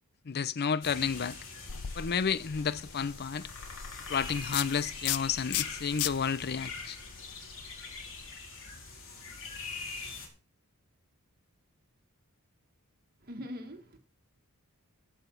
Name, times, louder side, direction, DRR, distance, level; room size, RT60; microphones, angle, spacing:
voice 1, 0.3-1.4 2.0-3.5 4.1-7.0, left 6 dB, 45° left, 0.6 m, -31 dB
sound 1, 0.8-10.3, left 4 dB, 60° left, 3.9 m, -43 dB
sound 2, 1.7-8.3, left 12 dB, 85° left, 0.6 m, -38 dB
voice 2, 13.2-14.0, equal, 40° right, 1.6 m, -42 dB
15.0 x 5.7 x 6.9 m
head